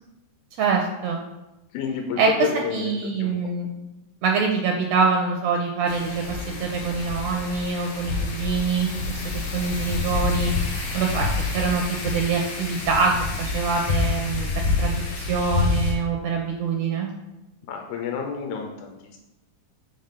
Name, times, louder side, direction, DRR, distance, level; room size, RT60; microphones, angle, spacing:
voice 1, 0.6-1.2 2.2-2.3 2.5-3.7 4.2-9.2 9.5-10.5 10.9-11.3 11.5-14.5 14.8-17.1, right 5 dB, 75° right, 1 dB, 1.7 m, -25 dB
voice 2, 1.7-3.5 17.7-19.2, left 7 dB, 85° left, 2 dB, 2.1 m, -30 dB
Wind, 5.9-15.9, left 3 dB, 60° left, 1.7 m, -27 dB
5.2 x 3.6 x 5.6 m, 0.96 s
omnidirectional pair, 3.4 m